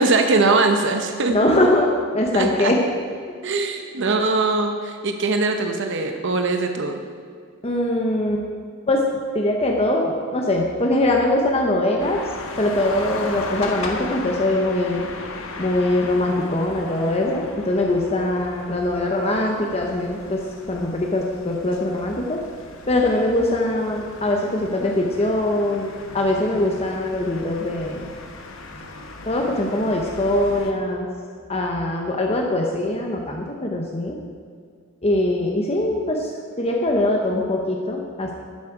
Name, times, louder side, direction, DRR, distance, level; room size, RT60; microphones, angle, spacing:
voice 1, 0.0-1.4 2.3-2.7 3.4-7.0, right 3 dB, 55° right, 5 dB, 0.8 m, -21 dB
voice 2, 1.3-2.8 7.6-8.4 8.9-9.0 9.3-12.2 12.6-15.1 15.6-20.4 20.7-22.4 22.9-28.1 29.2-31.1 31.5-34.2 35.0-36.3 36.6-38.3, left 1 dB, 30° left, 1 dB, 0.9 m, -22 dB
sound 1, 12.0-30.7, left 3 dB, 65° left, 1.1 m, -37 dB
11.5 x 8.3 x 5.0 m, 2.1 s
head